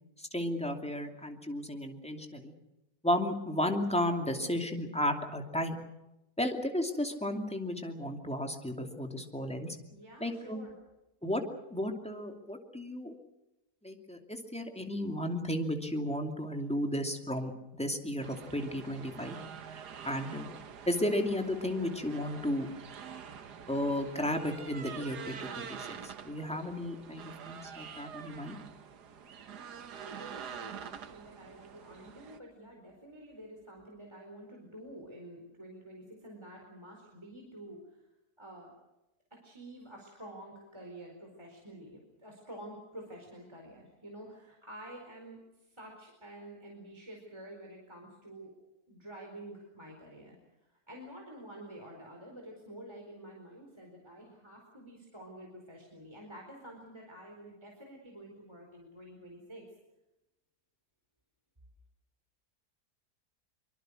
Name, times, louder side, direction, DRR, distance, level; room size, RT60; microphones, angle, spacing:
voice 1, 0.2-2.5 3.0-5.8 6.4-9.8 10.2-10.6 11.2-11.4 11.7-13.1 13.8-19.4 20.0-20.5 20.9-22.7 23.7-28.6, left 1 dB, 5° left, 4 dB, 2.7 m, -34 dB
voice 2, 9.9-10.7 29.2-38.0 38.4-38.7 39.3-48.5 48.9-50.4 50.7-59.6, right 1 dB, 15° right, 0 dB, 4.6 m, -49 dB
sound 1, 18.2-32.4, right 7 dB, 80° right, 1.8 m, -46 dB
25.0 x 24.5 x 6.5 m, 0.95 s
omnidirectional pair, 1.7 m